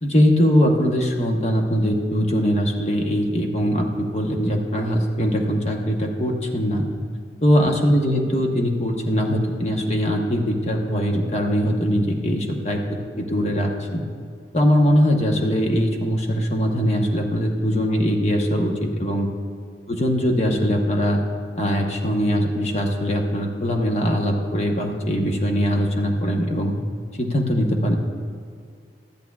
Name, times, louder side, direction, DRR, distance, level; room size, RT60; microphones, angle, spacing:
voice 1, 0.0-6.9 7.4-12.8 13.2-14.0 14.5-19.3 19.9-21.2 21.6-26.7 27.2-28.0, equal, 35° left, 2 dB, 1.0 m, -21 dB
13.0 x 10.5 x 2.4 m, 2.2 s
head